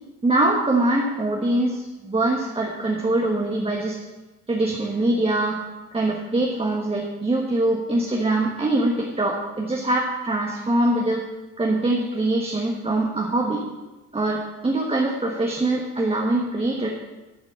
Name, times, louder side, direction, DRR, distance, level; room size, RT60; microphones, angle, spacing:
voice 1, 0.2-4.0 4.5-5.6 5.9-11.2 11.6-13.6 14.1-16.9, right 2 dB, 20° right, -1 dB, 1.4 m, -23 dB
10.5 x 5.1 x 7.6 m, 1.1 s
cardioid pair, 90°, 30 cm